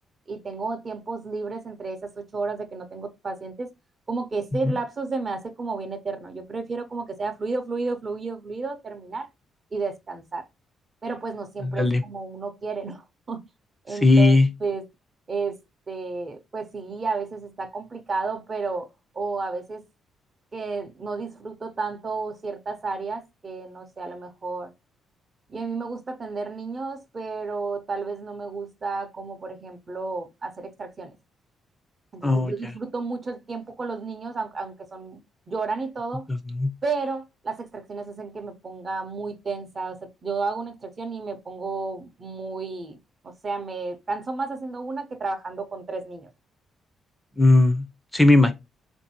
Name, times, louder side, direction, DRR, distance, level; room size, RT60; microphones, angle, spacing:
voice 1, 0.3-3.7 4.1-9.3 9.7-10.4 11.0-13.4 13.8-14.8 15.3-15.6 15.9-18.9 19.1-19.8 20.5-24.7 25.5-31.1 32.1-35.2 35.5-36.2 36.8-43.0 43.2-46.3, right 4 dB, 40° right, 0.6 m, -32 dB
voice 2, 11.6-12.0 14.0-14.5 32.2-32.5 36.3-36.7 47.4-47.8 48.1-48.5, left 2 dB, 10° left, 0.4 m, -17 dB
3.8 x 2.6 x 2.8 m
cardioid pair, 90°, 0 cm